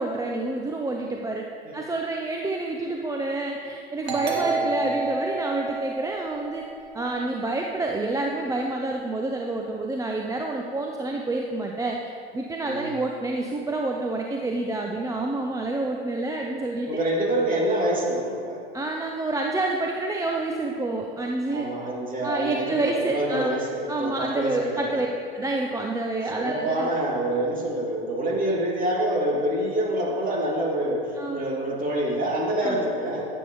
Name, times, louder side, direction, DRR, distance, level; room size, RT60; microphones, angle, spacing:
voice 1, 0.0-1.5 1.7-6.6 6.9-16.9 18.7-21.7 22.2-23.6 23.9-25.1 25.3-26.9 31.2-31.5 32.6-32.8, right 2 dB, 10° right, 1 dB, 0.6 m, -28 dB
Doorbell, 4.1-7.4, right 3 dB, 90° right, 1.6 m, -30 dB
voice 2, 4.2-4.8 12.6-12.9 16.9-18.6 21.5-25.0 26.3-31.0 31.3-33.3, right 1 dB, 25° right, -3 dB, 2.5 m, -26 dB
12.5 x 8.1 x 3.1 m, 2.4 s
hypercardioid pair, 95°, 31 cm